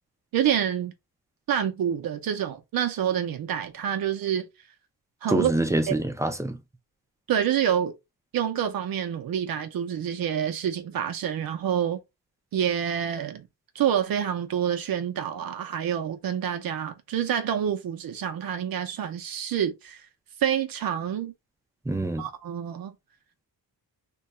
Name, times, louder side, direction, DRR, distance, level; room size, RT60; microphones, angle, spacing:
voice 1, 0.3-0.9 1.5-4.5 5.2-5.5 5.9-6.0 7.3-7.9 8.3-12.0 12.5-13.4 13.7-20.0 20.4-21.3 22.2-22.9, right 9 dB, 65° right, 0.6 m, -27 dB
voice 2, 5.3-6.6 21.9-22.2, right 1 dB, 10° right, 0.4 m, -26 dB
2.8 x 2.3 x 3.9 m
wide cardioid pair, 145°, 38 cm